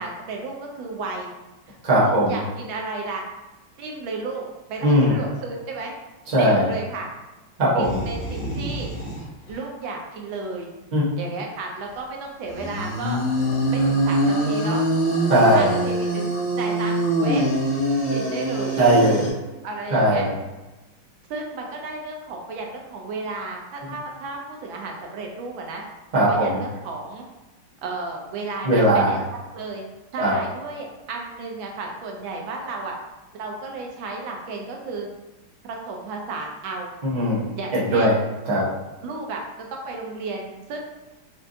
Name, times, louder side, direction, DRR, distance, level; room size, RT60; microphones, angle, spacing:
voice 1, 0.0-1.3 1.7-3.2 3.8-4.4 4.7-5.9 6.4-7.1 7.8-8.9 9.5-10.7 11.2-13.2 13.7-14.8 15.5-17.4 18.1-18.8 19.6-20.2 21.3-25.8 26.3-27.3 27.8-29.2 29.5-29.8 30.1-32.9 33.4-35.1 35.6-36.9 37.6-38.1 38.5-38.7 39.0-39.4 39.7-40.8, right 3 dB, 75° right, 0 dB, 1.3 m, -33 dB
voice 2, 1.8-2.4 4.8-5.2 6.3-6.7 7.6-8.0 10.9-11.1 15.3-15.8 18.7-19.3 19.9-20.3 26.1-26.6 28.6-29.2 30.2-30.3 37.0-38.2 38.4-38.6, right 1 dB, 45° right, -7 dB, 0.5 m, -19 dB
sound 1, 7.8-9.2 9.5-9.6 12.5-19.3, right 1 dB, 45° left, 1.2 m, -24 dB
4.4 x 2.4 x 2.6 m, 1.1 s
omnidirectional pair, 2.3 m